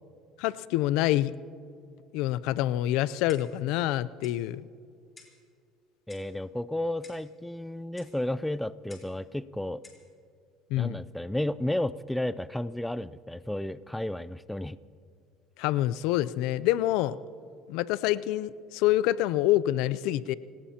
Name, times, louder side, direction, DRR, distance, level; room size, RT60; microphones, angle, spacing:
voice 1, 0.4-1.3 2.1-4.6 10.7-11.0 15.6-17.2 17.7-20.3, left 14 dB, 75° left, 17 dB, 0.5 m, -26 dB
Clock, 3.3-3.7 4.2-4.4 5.2-5.4 6.1-6.4 7.0-7.3 8.0-8.2 8.9-9.2 9.8-10.1, left 3 dB, 25° left, 4.2 m, -53 dB
voice 2, 6.1-9.8 10.8-14.8, left 1 dB, 5° left, 16 dB, 0.4 m, -32 dB
27.0 x 18.5 x 2.9 m, 2.3 s
supercardioid pair, 110°, 0 cm